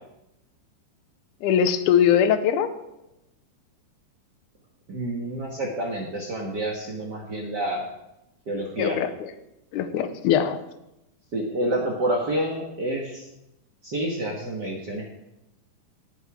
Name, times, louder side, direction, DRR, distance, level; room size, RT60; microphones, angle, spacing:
voice 1, 1.4-2.7 8.8-9.3 9.7-10.6, left 9 dB, 75° left, 9 dB, 2.1 m, -21 dB
voice 2, 4.9-7.8 8.5-9.0 11.3-13.3 13.8-15.0, right 1 dB, 50° right, -1 dB, 1.3 m, -28 dB
17.5 x 5.9 x 4.8 m, 0.89 s
omnidirectional pair, 3.8 m